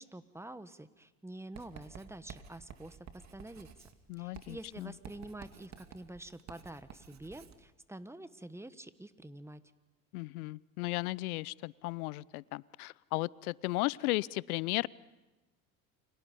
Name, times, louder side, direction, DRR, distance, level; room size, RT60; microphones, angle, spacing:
voice 1, 0.0-3.7 4.2-9.6, right 1 dB, 5° right, 13 dB, 1.3 m, -47 dB
Writing, 1.5-7.6, right 7 dB, 35° right, 2.3 m, -52 dB
voice 2, 4.1-4.9 10.1-14.9, left 21 dB, 75° left, 23 dB, 0.7 m, -35 dB
29.0 x 25.0 x 5.5 m, 1.1 s
hypercardioid pair, 75°, 44 cm